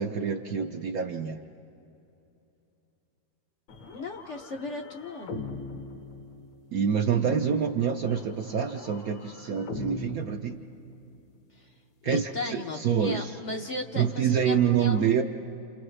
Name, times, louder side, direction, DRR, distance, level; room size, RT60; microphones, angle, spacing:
voice 1, 0.0-1.4 6.7-10.6 12.0-13.3 14.0-15.2, right 7 dB, 65° right, 4 dB, 0.9 m, -26 dB
sound 1, 3.7-6.9 8.1-11.3, left 3 dB, 75° left, 1.9 m, -41 dB
voice 2, 3.9-5.4 11.6-11.7 12.0-15.1, left 3 dB, 55° left, 3 dB, 0.8 m, -36 dB
29.5 x 28.5 x 3.3 m, 2.8 s
omnidirectional pair, 2.1 m